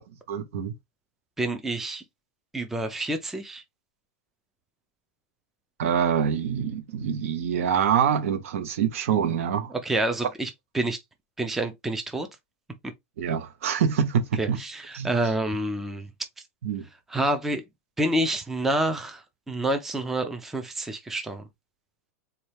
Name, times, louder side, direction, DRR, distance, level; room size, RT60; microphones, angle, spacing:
voice 1, 0.3-0.7 5.8-9.7 13.2-14.6 14.9-15.1 16.6-16.8, right 8 dB, 70° right, 0.9 m, -25 dB
voice 2, 1.4-2.0 2.5-3.6 9.7-10.5 10.7-11.0 11.4-12.3 14.4-16.1 17.1-17.6 18.0-21.4, right 1 dB, 5° right, 0.4 m, -28 dB
4.1 x 2.2 x 3.2 m
supercardioid pair, 160°, 8 cm